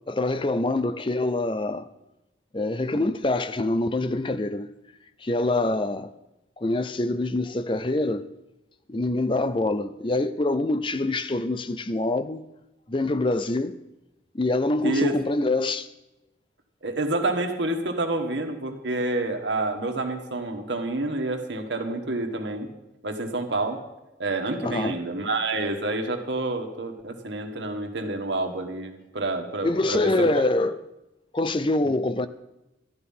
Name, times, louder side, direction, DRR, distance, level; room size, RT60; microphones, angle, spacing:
voice 1, 0.1-1.9 2.5-4.7 5.2-6.1 6.6-8.3 8.9-12.4 12.9-13.8 14.3-15.9 24.6-25.0 29.6-30.8 31.3-32.3, left 2 dB, 25° left, 0.5 m, -25 dB
voice 2, 14.8-15.2 16.8-22.7 23.0-23.8 24.2-30.5, right 2 dB, 75° right, 1.5 m, -28 dB
13.0 x 10.5 x 5.5 m
head